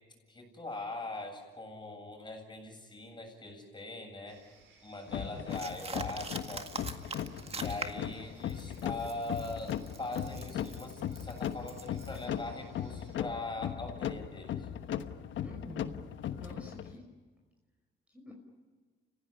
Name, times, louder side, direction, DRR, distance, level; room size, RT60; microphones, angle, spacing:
voice 1, 0.3-4.4 4.8-7.1 7.5-14.7, left 2 dB, 20° left, 3 dB, 7.9 m, -41 dB
sound 1, 4.3-13.2, right 4 dB, 75° right, 6.0 m, -63 dB
sound 2, 5.1-16.9, left 10 dB, 75° left, 1.2 m, -38 dB
voice 2, 5.1-5.5 15.4-16.0 16.4-17.0 18.1-18.3, left 1 dB, 5° right, 1 dB, 5.4 m, -48 dB
sound 3, 5.5-8.1 8.5-12.3, right 4 dB, 30° right, 1.9 m, -43 dB
30.0 x 16.5 x 10.0 m, 1.4 s
cardioid pair, 90°, 20 cm